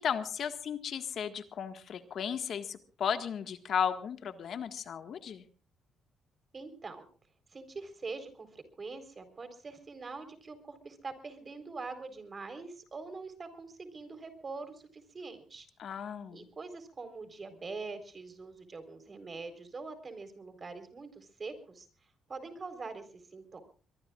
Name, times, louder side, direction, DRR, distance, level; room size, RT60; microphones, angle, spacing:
voice 1, 0.0-5.4 15.8-16.5, left 8 dB, 60° left, 8 dB, 1.7 m, -35 dB
voice 2, 6.5-7.1 7.5-15.7 16.3-21.9 22.3-23.6, right 3 dB, 35° right, 9 dB, 4.2 m, -44 dB
23.0 x 23.0 x 2.5 m, 0.39 s
cardioid pair, 90°, 0 cm